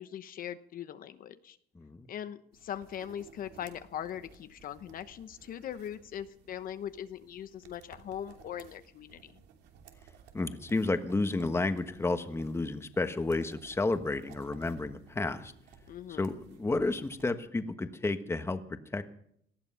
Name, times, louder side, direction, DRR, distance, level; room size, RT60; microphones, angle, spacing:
voice 1, 0.0-1.6 2.1-9.4 15.9-16.3, left 10 dB, 55° left, 11 dB, 0.9 m, -41 dB
voice 2, 1.7-2.1 10.3-15.5 16.1-19.0, left 2 dB, 15° left, 9 dB, 1.4 m, -31 dB
sound 1, 2.5-17.4, right 6 dB, 80° right, 2.9 m, -57 dB
19.0 x 13.5 x 5.6 m, 0.70 s
cardioid pair, 110°, 17 cm